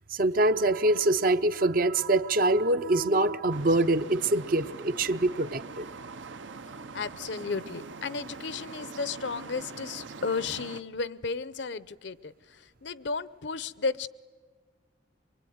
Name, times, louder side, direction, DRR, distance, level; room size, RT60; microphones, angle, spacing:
voice 1, 0.1-5.9, right 2 dB, 45° right, 0.7 m, -24 dB
sound 1, 3.5-10.8, right 4 dB, 80° right, 0.8 m, -43 dB
voice 2, 6.9-14.1, left 4 dB, 70° left, 0.8 m, -34 dB
24.0 x 23.0 x 9.4 m
head